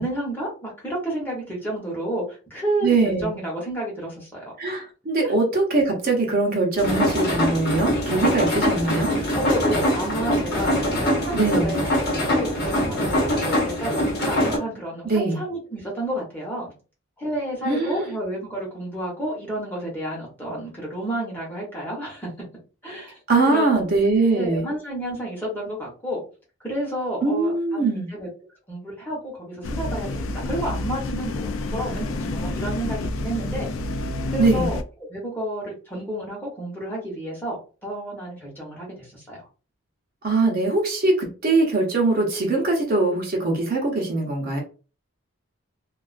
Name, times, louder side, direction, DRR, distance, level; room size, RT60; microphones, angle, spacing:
voice 1, 0.0-4.5 5.2-5.4 9.4-11.8 12.2-16.7 17.2-22.3 22.8-23.1 23.5-24.0 24.3-26.2 26.6-28.3 28.7-33.7 34.3-34.8 35.1-39.5, right 1 dB, 10° left, -3 dB, 0.8 m, -30 dB
voice 2, 2.8-3.4 4.6-9.1 11.3-11.7 15.0-15.4 17.6-18.1 23.3-24.7 27.2-28.1 34.4-34.7 40.2-44.6, right 3 dB, 45° right, 0 dB, 0.6 m, -22 dB
sound 1, 6.8-14.6, equal, 45° left, 0.9 m, -23 dB
sound 2, 29.6-34.8, left 2 dB, 70° left, 0.3 m, -29 dB
2.3 x 2.3 x 2.4 m, 0.34 s
head